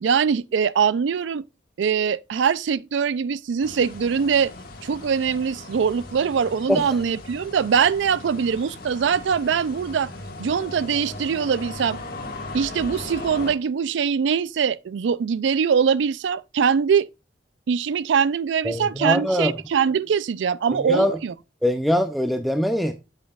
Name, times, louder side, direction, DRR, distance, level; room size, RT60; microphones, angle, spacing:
voice 1, 0.0-1.4 1.8-4.5 4.8-10.1 10.4-12.0 12.5-17.1 17.7-21.3, right 6 dB, 85° right, 0.4 m, -22 dB
sound 1, 3.6-13.5, left 2 dB, 55° left, 1.6 m, -38 dB
voice 2, 18.6-19.5 20.7-21.2 21.6-22.9, equal, ahead, 0.5 m, -22 dB
8.5 x 7.4 x 2.3 m
head